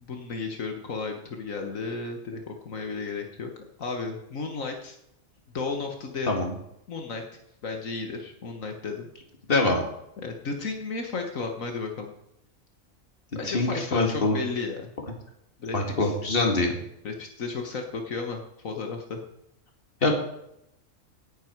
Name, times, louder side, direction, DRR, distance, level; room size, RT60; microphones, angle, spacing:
voice 1, 0.1-3.5 3.8-5.0 5.5-6.3 6.9-7.2 7.6-9.1 10.2-12.1 13.4-14.9 15.6-16.2 17.0-19.2, left 4 dB, 75° left, 3 dB, 1.8 m, -33 dB
voice 2, 9.5-9.8 13.4-14.4 15.7-16.7 20.0-20.1, left 2 dB, 45° left, 3 dB, 2.4 m, -24 dB
17.0 x 10.5 x 4.7 m, 0.82 s
omnidirectional pair, 1.4 m